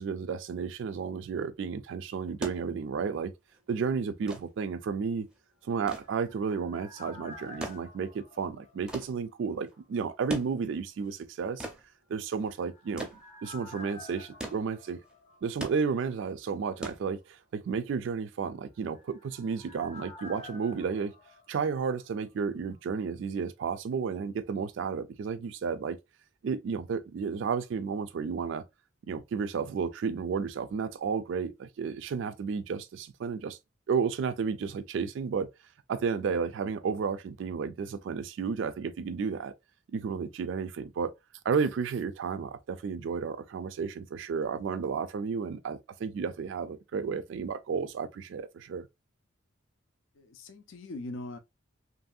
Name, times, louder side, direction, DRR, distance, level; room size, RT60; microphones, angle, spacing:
voice 1, 0.0-3.3 3.7-5.3 5.6-11.7 12.1-13.1 13.4-15.0 15.4-21.1 21.5-26.0 26.4-28.6 29.1-33.6 33.9-35.5 35.9-39.5 39.9-41.1 41.5-48.9, right 5 dB, 65° right, 0.3 m, -32 dB
sound 1, 2.4-17.7 18.9-19.0, right 1 dB, 5° right, 0.5 m, -43 dB
sound 2, 5.7-9.5 9.8-9.9 12.3-16.0 16.3-16.4 18.6-22.5 22.7-22.8, left 2 dB, 35° left, 0.7 m, -51 dB
voice 2, 50.2-51.4, left 2 dB, 70° left, 0.5 m, -41 dB
2.9 x 2.6 x 2.3 m
head